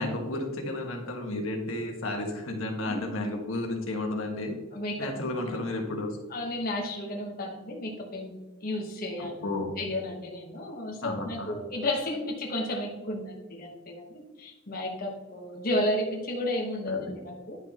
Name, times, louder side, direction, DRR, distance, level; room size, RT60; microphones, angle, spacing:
voice 1, 0.0-4.6 5.0-6.2 9.2-9.7 11.0-11.5 16.8-17.2, left 2 dB, 80° left, 2 dB, 1.4 m, -32 dB
voice 2, 4.7-5.1 6.3-8.3 8.6-9.3 9.8-14.0 14.4-17.6, left 1 dB, 45° left, -1 dB, 1.1 m, -32 dB
9.9 x 6.2 x 2.9 m, 1.1 s
head